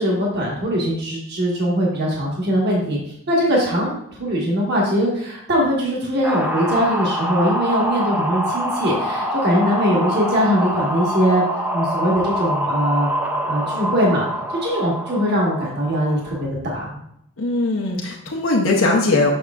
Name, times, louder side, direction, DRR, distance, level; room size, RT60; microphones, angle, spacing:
voice 1, 0.0-3.0 3.3-3.9 4.2-11.4 11.7-13.1 13.5-14.3 14.6-17.0, equal, 50° right, -3 dB, 1.4 m, -21 dB
sound 1, 6.2-16.5, equal, 10° right, 0.5 m, -25 dB
voice 2, 17.4-19.3, left 2 dB, 80° left, -2 dB, 0.9 m, -19 dB
6.9 x 6.4 x 2.4 m, 0.73 s
head